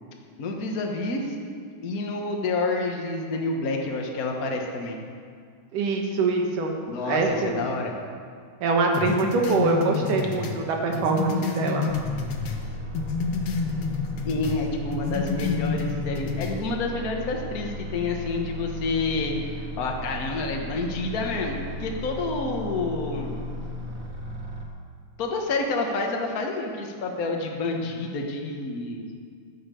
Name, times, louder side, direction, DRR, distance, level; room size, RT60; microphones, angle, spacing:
voice 1, 0.4-1.3 1.8-5.0 6.9-7.9 14.2-21.5 21.8-23.4 25.2-29.1, left 3 dB, 90° left, 1 dB, 0.8 m, -28 dB
voice 2, 5.7-6.7 7.1-7.6 8.6-11.9, right 3 dB, 80° right, 2 dB, 3.0 m, -24 dB
sound 1, 8.9-12.6 12.9-14.6 14.9-16.6, left 5 dB, 65° left, 1.5 m, -29 dB
sound 2, 11.9-24.7, equal, 50° right, 1.0 m, -36 dB
11.0 x 10.0 x 6.9 m, 2.1 s
omnidirectional pair, 3.7 m